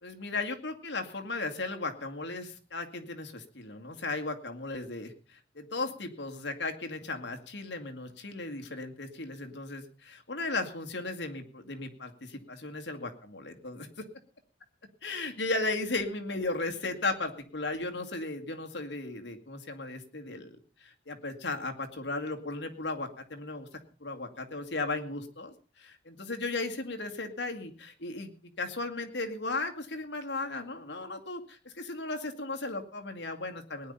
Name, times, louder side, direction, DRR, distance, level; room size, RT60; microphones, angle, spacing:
voice 1, 0.0-14.0 15.0-23.7 24.0-33.9, left 3 dB, 70° left, 4 dB, 2.2 m, -36 dB
18.5 x 10.5 x 5.6 m, 0.39 s
head